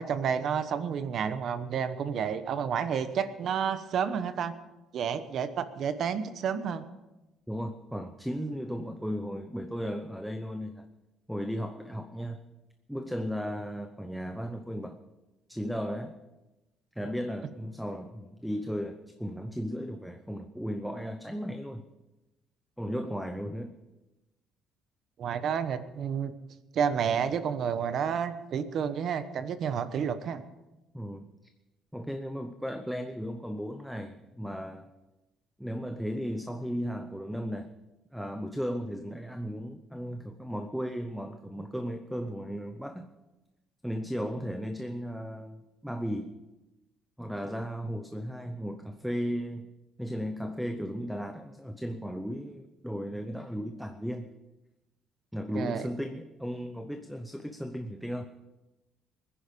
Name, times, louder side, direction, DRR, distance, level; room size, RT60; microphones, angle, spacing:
voice 1, 0.0-4.5 4.9-6.8 25.2-26.3 26.7-30.4 55.5-55.9, right 7 dB, 45° right, 12 dB, 1.0 m, -30 dB
voice 2, 7.5-10.9 11.3-12.4 12.9-15.0 15.5-16.2 17.0-21.8 22.8-23.8 30.9-31.3 31.9-34.9 35.6-37.7 38.1-43.1 43.8-46.4 47.2-49.7 50.0-54.3 55.3-58.2, equal, ahead, 7 dB, 0.7 m, -35 dB
22.5 x 10.0 x 5.3 m, 1.0 s
cardioid pair, 165°, 0 cm